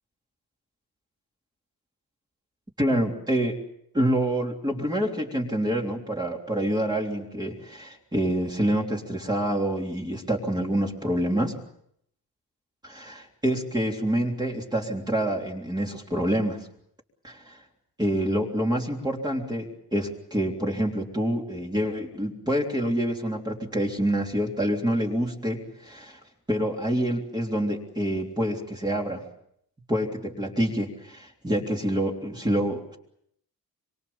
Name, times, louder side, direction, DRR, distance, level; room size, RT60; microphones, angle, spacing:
voice 1, 2.8-3.6 3.9-11.5 12.8-16.6 17.2-17.6 18.0-26.2 26.5-29.2 29.9-33.0, right 1 dB, 10° right, -1 dB, 3.4 m, -27 dB
26.5 x 24.0 x 7.2 m, 0.71 s
wide cardioid pair, 170°, 37 cm